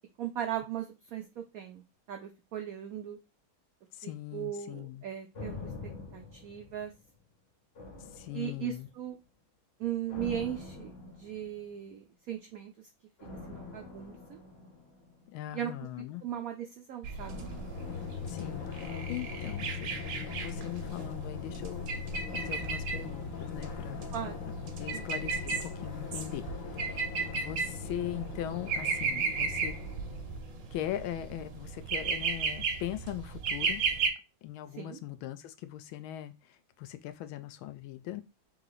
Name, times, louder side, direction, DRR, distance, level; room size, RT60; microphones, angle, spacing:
voice 1, 0.2-3.2 4.0-5.7 6.1-6.9 8.3-9.2 9.8-12.9 13.5-14.4 15.5-15.7 16.0-17.5 24.1-24.3 24.9-25.0 34.7-35.0, right 10 dB, 90° right, 0.7 m, -38 dB
voice 2, 3.9-5.0 8.1-8.9 15.3-16.2 18.3-19.9 20.4-21.9 22.3-24.1 24.8-26.5 26.8-29.8 30.7-33.8 34.4-38.2, left 12 dB, 85° left, 1.4 m, -40 dB
sound 1, 5.3-7.3 7.8-9.0 10.1-11.8 13.2-15.6 17.2-19.4 19.7-19.8, left 3 dB, 35° left, 1.3 m, -46 dB
sound 2, 17.0-34.1, right 5 dB, 60° right, 0.9 m, -35 dB
Drum, 17.7-30.8, left 8 dB, 65° left, 0.8 m, -41 dB
3.7 x 3.1 x 3.8 m
omnidirectional pair, 2.2 m